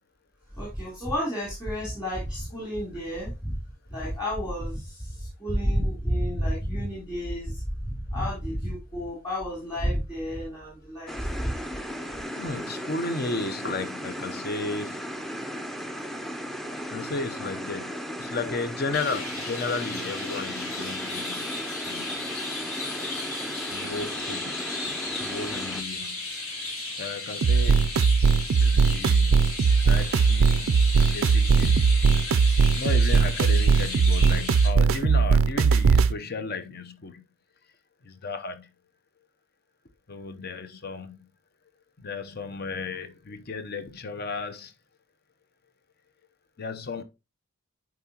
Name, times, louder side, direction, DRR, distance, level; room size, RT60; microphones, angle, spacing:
voice 1, 0.5-3.6 3.9-11.5, equal, 15° left, 3.3 m, -30 dB
sound 1, 11.1-25.8, equal, ahead, 0.5 m, -36 dB
voice 2, 12.4-15.0 16.9-21.5 21.9-22.4 23.7-24.9 25.2-26.3 27.0-27.9 28.6-29.4 29.7-31.8 32.7-37.2 38.0-38.7 40.1-41.3 42.0-44.7 46.6-47.0, left 3 dB, 45° left, 0.7 m, -34 dB
Chirp tweet, 18.9-34.7, left 2 dB, 70° left, 3.2 m, -35 dB
sound 2, 27.4-36.1, right 5 dB, 65° right, 0.4 m, -20 dB
10.5 x 4.8 x 2.9 m
head